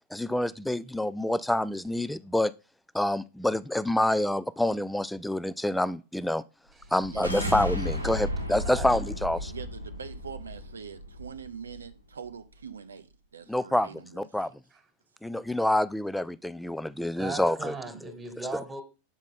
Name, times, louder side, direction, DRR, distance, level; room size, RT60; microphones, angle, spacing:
voice 1, 0.1-2.5 2.9-6.4 6.9-9.5 13.5-13.9 14.1-14.5 15.2-17.7, left 1 dB, 5° left, 0.3 m, -27 dB
sound 1, 6.8-11.9, left 1 dB, 90° right, 0.8 m, -34 dB
voice 2, 7.0-7.4 8.3-8.4 9.5-14.5, right 7 dB, 70° right, 0.4 m, -44 dB
voice 3, 8.6-8.9 14.7-14.8 17.2-18.8, right 3 dB, 15° right, 1.5 m, -37 dB
7.4 x 4.8 x 3.7 m
figure-of-eight pair, 90°, 0 cm